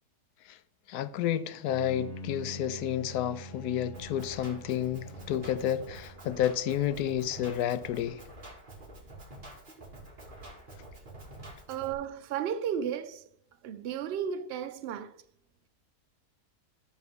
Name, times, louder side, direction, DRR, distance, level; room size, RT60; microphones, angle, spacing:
voice 1, 0.9-8.2, left 10 dB, 80° left, 1.1 m, -30 dB
Bowed string instrument, 1.6-6.6, right 1 dB, 40° left, 2.4 m, -45 dB
Drum kit, 3.9-11.9, right 2 dB, 30° right, 2.1 m, -48 dB
voice 2, 11.7-13.2 13.6-15.1, right 8 dB, 90° right, 0.5 m, -34 dB
13.0 x 6.3 x 3.5 m
omnidirectional pair, 1.7 m